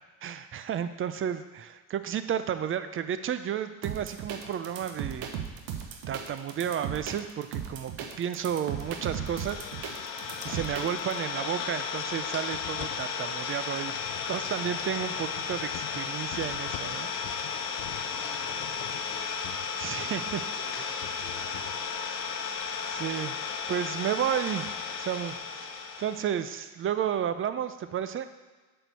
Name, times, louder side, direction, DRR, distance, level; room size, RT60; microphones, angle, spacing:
voice 1, 0.2-5.3 6.1-7.9 8.2-9.6 10.4-14.0 14.3-17.1 19.8-20.4 20.8-20.9 22.9-23.4 23.7-24.7 25.0-25.3 25.6-28.3, right 9 dB, 30° right, 11 dB, 0.4 m, -32 dB
sound 1, 3.8-11.1, right 8 dB, 70° right, 1.2 m, -36 dB
Idling, 8.7-26.4, left 6 dB, 85° left, 1.1 m, -34 dB
sound 2, 9.3-10.9 12.0-20.5 21.0-21.8, left 15 dB, 65° left, 0.6 m, -47 dB
voice 2, 18.0-19.4 19.7-22.0, left 4 dB, 25° left, -6 dB, 1.5 m, -51 dB
7.5 x 4.4 x 6.7 m, 1.3 s
supercardioid pair, 105°, 47 cm